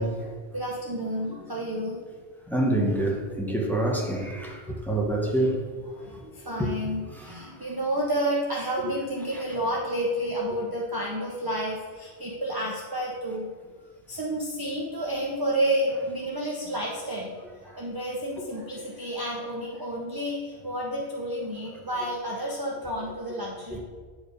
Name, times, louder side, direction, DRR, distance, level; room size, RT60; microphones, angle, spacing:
voice 1, 0.0-2.0 5.9-13.5 14.1-17.3 17.6-23.8, right 1 dB, 25° right, -3 dB, 0.8 m, -30 dB
voice 2, 2.5-4.6 4.9-5.6 6.6-6.7 23.7-23.8, right 1 dB, ahead, -2 dB, 1.2 m, -26 dB
8.9 x 4.6 x 5.1 m, 1.5 s
omnidirectional pair, 1.1 m